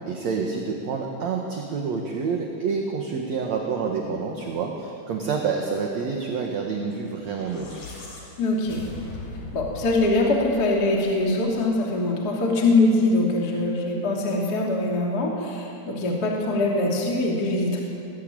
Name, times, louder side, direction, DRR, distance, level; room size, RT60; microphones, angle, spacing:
voice 1, 0.1-7.8, right 5 dB, 55° right, 1 dB, 2.2 m, -28 dB
sound 1, 7.1-11.6, left 3 dB, 45° left, 5.7 m, -40 dB
voice 2, 8.4-8.8 9.5-17.8, left 2 dB, 25° left, -2 dB, 2.8 m, -23 dB
22.0 x 19.0 x 9.0 m, 2.7 s
omnidirectional pair, 4.9 m